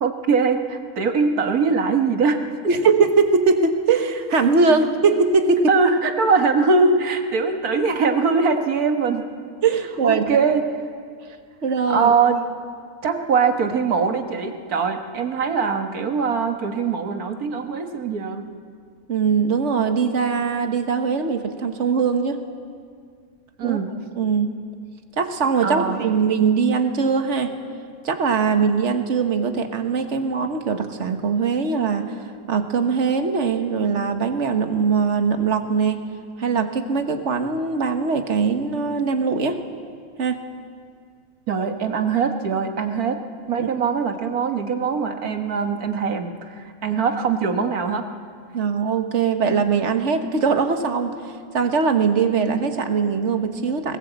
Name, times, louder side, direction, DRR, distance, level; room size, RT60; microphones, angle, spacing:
voice 1, 0.0-2.4 5.7-9.2 10.0-10.6 11.9-12.4 13.0-18.5 23.6-24.0 25.6-26.2 41.5-43.2 43.5-48.1, right 5 dB, 75° right, 5 dB, 1.9 m, -22 dB
voice 2, 2.7-5.7 7.4-7.5 9.6-10.4 11.6-12.1 19.1-22.4 23.6-23.8 24.2-24.5 25.2-27.5 28.0-32.2 32.5-36.0 36.4-39.6 40.2-40.4 43.6-43.7 48.5-51.2 51.5-54.0, right 5 dB, 50° right, 6 dB, 1.6 m, -21 dB
21.0 x 19.5 x 8.1 m, 2.1 s
omnidirectional pair, 1.6 m